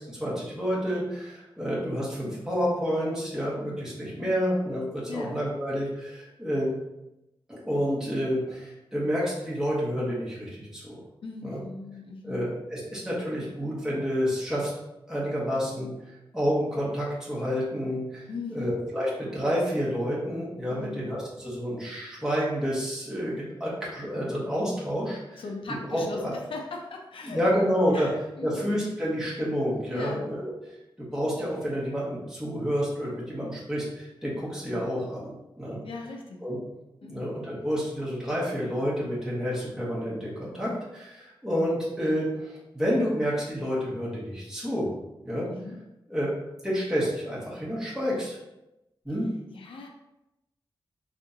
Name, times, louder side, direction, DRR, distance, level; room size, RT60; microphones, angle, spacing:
voice 1, 0.1-6.7 7.5-11.0 11.4-11.6 12.2-14.7 15.1-15.9 16.3-18.2 18.5-25.4 25.9-26.3 27.2-28.1 28.4-30.5 31.0-35.8 36.4-36.6 37.0-44.9 45.2-45.5 46.1-46.3 46.6-48.4 49.0-49.3, equal, 5° right, -7 dB, 1.3 m, -29 dB
voice 2, 11.2-12.5 18.3-18.8 20.7-21.1 25.4-27.4 27.9-28.6 29.9-30.2 35.8-36.4 37.0-37.3 45.5-45.8 49.5-49.9, left 3 dB, 85° left, 1 dB, 0.5 m, -39 dB
3.6 x 2.5 x 2.7 m, 0.93 s
wide cardioid pair, 105°, 9 cm